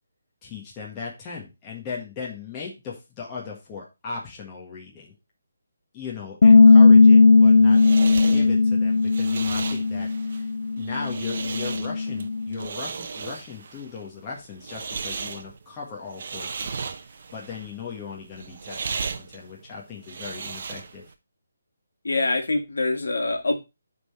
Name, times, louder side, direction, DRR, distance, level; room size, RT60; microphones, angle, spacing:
voice 1, 0.4-5.2 5.9-7.8 8.3-10.5 10.8-21.0, left 5 dB, 20° left, -4 dB, 1.6 m, -38 dB
Bass guitar, 6.4-12.7, left 4 dB, 60° left, 0.6 m, -16 dB
sound 1, 7.3-21.1, right 5 dB, 50° right, 0.9 m, -36 dB
voice 2, 22.0-23.6, left 2 dB, 85° left, 5 dB, 1.6 m, -24 dB
9.4 x 4.0 x 4.3 m, 0.25 s
hypercardioid pair, 160°, 0 cm